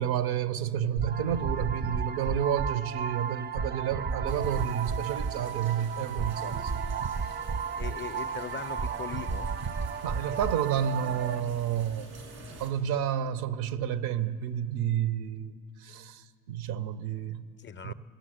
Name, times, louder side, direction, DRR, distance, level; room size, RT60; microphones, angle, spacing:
voice 1, 0.0-6.8 10.0-12.1 12.6-15.5 15.8-17.4 17.8-17.9, right 9 dB, 70° right, 0.7 m, -30 dB
sound 1, 1.0-11.4, right 6 dB, 30° right, 0.4 m, -33 dB
sound 2, 4.3-12.7, right 1 dB, 90° right, 2.5 m, -48 dB
voice 2, 7.8-9.5 17.6-17.9, left 8 dB, 30° left, 0.4 m, -39 dB
16.5 x 7.4 x 10.0 m
hypercardioid pair, 55°, 39 cm